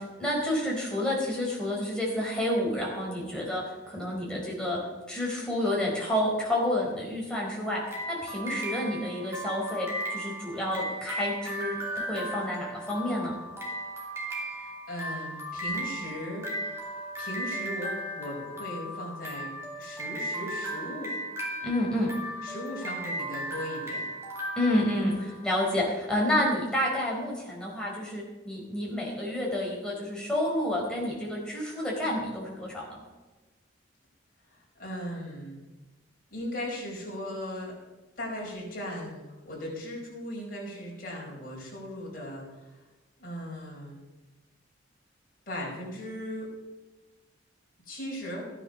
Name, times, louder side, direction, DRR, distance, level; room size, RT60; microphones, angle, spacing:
voice 1, 0.0-4.8 5.1-13.4 21.6-22.1 24.6-33.0, left 1 dB, 5° left, -4 dB, 4.4 m, -29 dB
sound 1, 7.9-25.5, equal, 15° right, 2.9 m, -36 dB
voice 2, 14.4-16.8 17.2-21.1 22.4-24.1 34.7-35.6 36.3-37.8 38.2-42.6 43.2-44.0 45.5-46.5 47.9-48.5, equal, 45° left, -3 dB, 4.8 m, -38 dB
14.5 x 9.8 x 6.6 m, 1.2 s
head